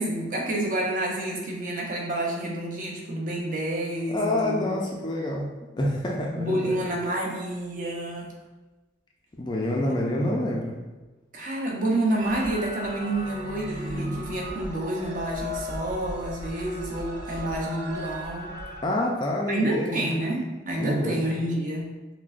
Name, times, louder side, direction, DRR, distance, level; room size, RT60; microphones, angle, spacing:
voice 1, 0.0-4.6 6.4-8.3 9.8-9.9 11.3-18.5 19.5-21.9, right 1 dB, 45° right, -2 dB, 0.7 m, -29 dB
voice 2, 4.1-5.5 5.8-6.8 9.4-10.8 17.3-17.4 18.8-20.2 20.8-21.2, left 1 dB, 20° left, -1 dB, 0.4 m, -27 dB
sound 1, 12.2-18.8, equal, 70° right, 1.0 m, -36 dB
5.8 x 2.1 x 2.5 m, 1.2 s
head